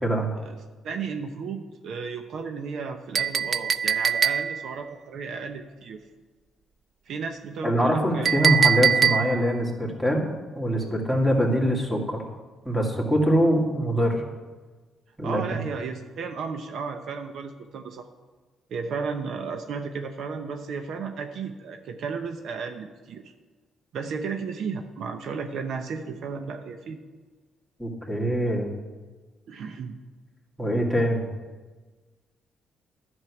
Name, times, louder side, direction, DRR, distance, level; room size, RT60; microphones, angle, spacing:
voice 1, 0.4-6.0 7.1-8.3 15.2-18.1 18.7-23.3 23.9-27.0 29.5-30.0, right 5 dB, 70° right, 6 dB, 0.8 m, -34 dB
Chink clink, 3.1-4.7 8.3-9.5, right 7 dB, 40° right, 0.4 m, -22 dB
voice 2, 7.6-10.3 10.5-12.2 12.6-14.2 15.2-15.6 27.8-28.7 30.6-31.2, equal, 10° right, 0 dB, 2.4 m, -23 dB
11.0 x 6.3 x 8.4 m, 1.3 s
cardioid pair, 90°, 0 cm